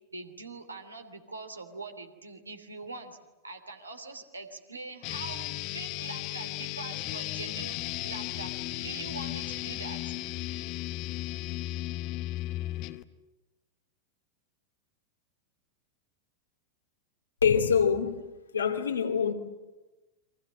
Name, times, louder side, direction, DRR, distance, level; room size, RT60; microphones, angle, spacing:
voice 1, 0.1-3.2 3.4-10.1, right 3 dB, 80° right, 3.1 m, -43 dB
sound 1, 5.0-13.0, left 16 dB, 45° left, 1.2 m, -35 dB
voice 2, 17.4-19.3, left 7 dB, 70° left, 2.8 m, -25 dB
29.5 x 24.5 x 7.7 m
figure-of-eight pair, 90°, 0 cm